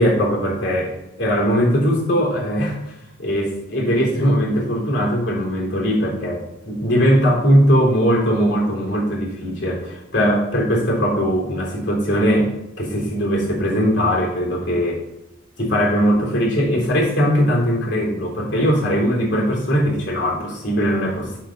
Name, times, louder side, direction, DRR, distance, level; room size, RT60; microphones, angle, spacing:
voice 1, 0.0-2.8 3.2-15.0 15.6-21.4, equal, 60° left, -2 dB, 3.4 m, -20 dB
8.0 x 6.4 x 5.9 m, 0.86 s
head